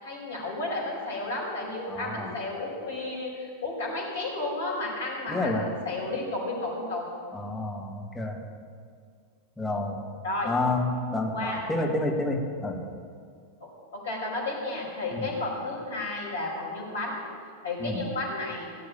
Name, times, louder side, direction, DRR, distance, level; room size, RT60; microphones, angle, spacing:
voice 1, 0.0-7.0 10.2-10.5 11.3-11.7 13.6-17.2 17.6-18.7, left 2 dB, 65° left, -2 dB, 5.1 m, -32 dB
voice 2, 1.9-2.3 5.3-5.7 7.3-8.4 9.6-10.0 10.4-12.8 15.1-15.3 17.8-18.0, left 2 dB, 10° left, 0 dB, 2.0 m, -29 dB
16.0 x 7.8 x 8.6 m, 2.1 s
figure-of-eight pair, 90°, 0 cm